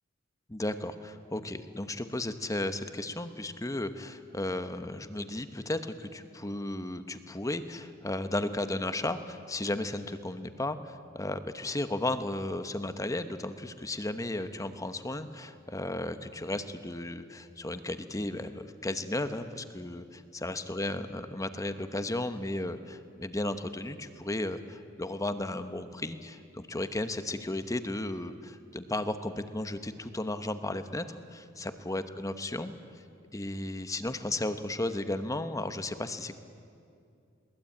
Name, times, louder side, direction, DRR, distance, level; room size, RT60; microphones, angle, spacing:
voice 1, 0.5-32.7 33.3-36.4, left 2 dB, 15° left, 10 dB, 1.0 m, -34 dB
22.0 x 19.0 x 8.6 m, 2.4 s
head